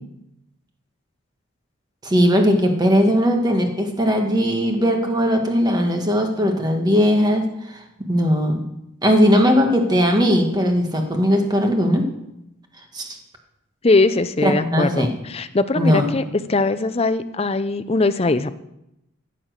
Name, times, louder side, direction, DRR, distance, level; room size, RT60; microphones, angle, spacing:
voice 1, 2.0-7.8 8.1-8.6 9.0-12.1 12.9-13.1 14.4-15.1 15.8-16.1, equal, 20° right, 3 dB, 1.5 m, -18 dB
voice 2, 13.8-16.2 16.5-18.5, left 3 dB, 25° left, 12 dB, 0.5 m, -20 dB
14.5 x 7.3 x 6.4 m, 0.85 s
head